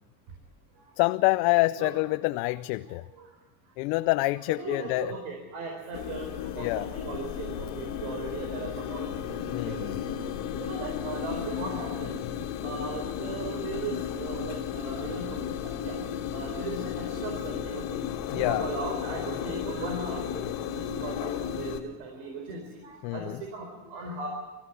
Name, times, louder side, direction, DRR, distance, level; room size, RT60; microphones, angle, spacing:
voice 1, 1.0-3.0 3.8-5.1 6.6-6.9 9.5-10.0 12.3-12.4 18.3-18.7 23.0-23.4, left 21 dB, 80° left, 0.7 m, -27 dB
voice 2, 4.5-6.3 6.5-9.1 9.6-10.3 10.6-12.2 12.6-16.0 16.3-17.8 18.3-20.4 20.7-24.3, right 4 dB, 65° right, 4.6 m, -38 dB
sound 1, 5.9-21.8, left 9 dB, 60° left, 2.7 m, -34 dB
25.0 x 15.0 x 8.3 m
cardioid pair, 155°, 49 cm